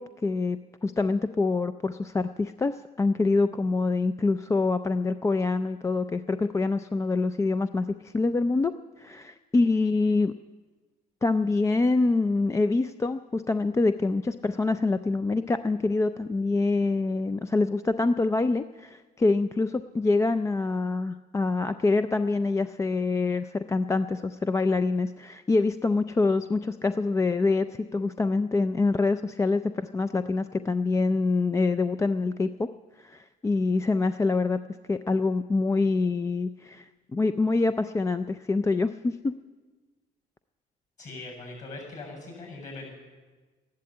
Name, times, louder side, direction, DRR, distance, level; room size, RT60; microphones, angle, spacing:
voice 1, 0.0-8.7 9.0-10.3 11.2-32.7 33.0-34.6 34.9-39.3, left 3 dB, 15° left, 11 dB, 0.4 m, -25 dB
voice 2, 41.0-42.9, left 3 dB, 45° left, 2 dB, 7.0 m, -41 dB
13.0 x 11.5 x 8.6 m, 1.3 s
cardioid pair, 110°, 17 cm